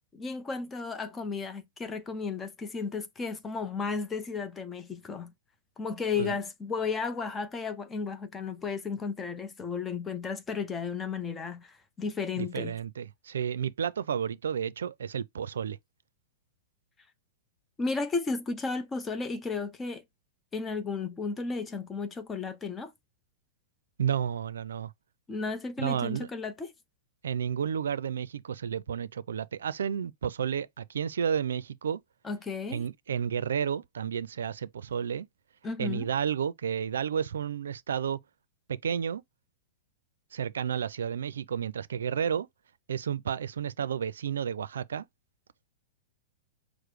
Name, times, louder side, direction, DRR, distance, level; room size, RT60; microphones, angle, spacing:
voice 1, 0.2-5.3 5.8-12.8 17.8-20.0 20.5-22.9 25.3-26.7 32.2-32.8 35.6-36.1, left 4 dB, 15° left, 0.6 m, -34 dB
voice 2, 12.4-15.8 24.0-24.9 25.8-26.3 27.2-32.0 32.7-35.3 35.8-38.2 38.7-39.2 40.3-42.5 42.9-45.0, right 8 dB, 85° right, 0.4 m, -31 dB
4.8 x 2.0 x 4.7 m
hypercardioid pair, 130°, 0 cm